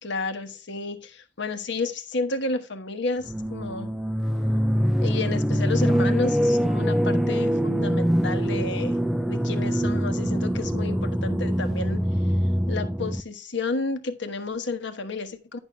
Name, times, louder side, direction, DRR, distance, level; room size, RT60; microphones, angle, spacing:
voice 1, 0.0-3.9 5.0-9.0 9.3-12.1 12.7-15.6, left 3 dB, 60° left, 1.2 m, -31 dB
sound 1, 3.3-13.2, equal, ahead, 0.4 m, -24 dB
10.5 x 6.3 x 3.2 m
head